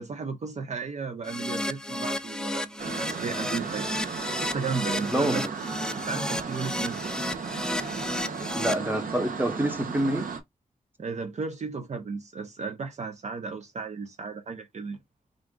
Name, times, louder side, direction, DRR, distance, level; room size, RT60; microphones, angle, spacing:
voice 1, 0.0-3.9 4.4-5.5 5.9-7.1 11.0-15.0, right 4 dB, 55° right, 0.6 m, -34 dB
Keyboard (musical), 1.2-8.7, left 1 dB, 5° left, 0.3 m, -33 dB
sound 1, 2.8-10.4, right 5 dB, 80° right, 0.9 m, -35 dB
voice 2, 5.0-5.5 8.4-10.3, right 1 dB, 15° right, 0.9 m, -27 dB
3.7 x 2.4 x 3.6 m
wide cardioid pair, 110°, 14 cm